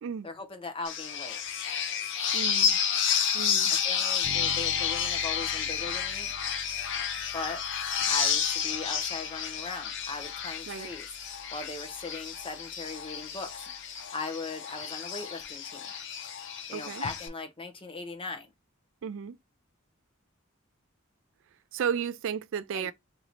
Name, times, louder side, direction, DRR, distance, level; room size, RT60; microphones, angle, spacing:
voice 1, 0.2-1.4 3.7-6.3 7.3-7.6 8.1-11.1 11.5-13.5 13.9-15.9 16.7-18.5 22.7-22.9, left 3 dB, 25° left, 0.7 m, -39 dB
sound 1, 0.8-17.3, left 7 dB, 60° left, 0.6 m, -31 dB
voice 2, 2.3-2.8 3.3-3.7 10.7-10.9 16.7-17.0 19.0-19.4 21.7-22.9, right 7 dB, 65° right, 0.3 m, -33 dB
Bass guitar, 4.2-14.0, right 5 dB, 35° right, 0.6 m, -51 dB
3.0 x 2.6 x 4.1 m
head